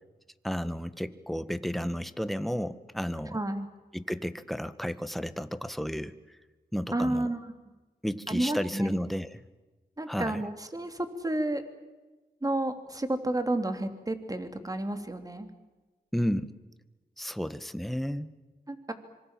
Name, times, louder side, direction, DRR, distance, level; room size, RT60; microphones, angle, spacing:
voice 1, 0.4-3.4 3.9-6.1 6.7-7.3 8.0-9.4 10.1-10.4 16.1-16.5 17.2-18.3, equal, ahead, 12 dB, 1.6 m, -32 dB
voice 2, 3.3-3.7 6.9-7.4 8.3-8.9 10.0-11.6 12.4-15.5 18.7-18.9, right 1 dB, 20° right, 7 dB, 3.3 m, -31 dB
26.0 x 24.0 x 7.6 m, 1.2 s
cardioid pair, 55°, 17 cm